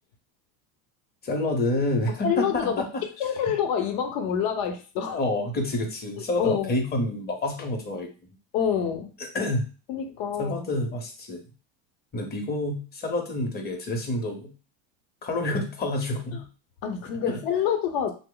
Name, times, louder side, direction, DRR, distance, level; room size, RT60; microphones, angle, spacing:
voice 1, 1.2-2.8 5.1-8.1 9.3-9.7 10.4-11.4 12.1-14.5 15.2-16.4 17.3-17.4, left 1 dB, 25° left, 3 dB, 0.7 m, -28 dB
voice 2, 2.1-5.2 6.4-6.7 8.5-9.1 9.9-10.7 16.8-18.1, left 8 dB, 60° left, 7 dB, 0.8 m, -27 dB
3.0 x 2.0 x 3.8 m, 0.34 s
supercardioid pair, 125°, 41 cm